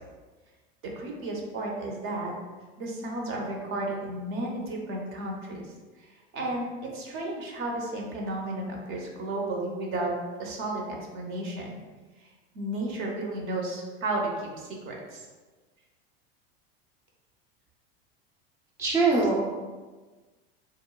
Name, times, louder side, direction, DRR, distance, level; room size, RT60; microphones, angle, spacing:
voice 1, 1.0-2.3 2.8-5.6 6.3-11.8 12.5-15.2 19.1-19.2, right 2 dB, 45° right, -1 dB, 0.7 m, -33 dB
voice 2, 18.8-19.5, right 3 dB, 10° right, -5 dB, 0.4 m, -23 dB
2.9 x 2.1 x 2.2 m, 1.3 s
supercardioid pair, 100°, 31 cm